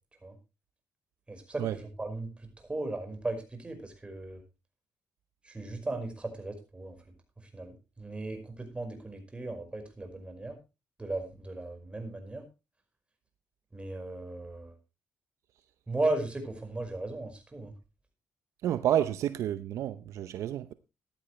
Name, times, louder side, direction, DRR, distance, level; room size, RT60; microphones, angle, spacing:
voice 1, 1.3-4.4 5.4-6.9 7.5-10.6 11.0-12.4 13.7-14.7 15.9-17.7, right 2 dB, 20° right, 5.2 m, -36 dB
voice 2, 18.6-20.7, right 11 dB, 75° right, 0.7 m, -30 dB
15.0 x 11.5 x 3.2 m
supercardioid pair, 70°, 5 cm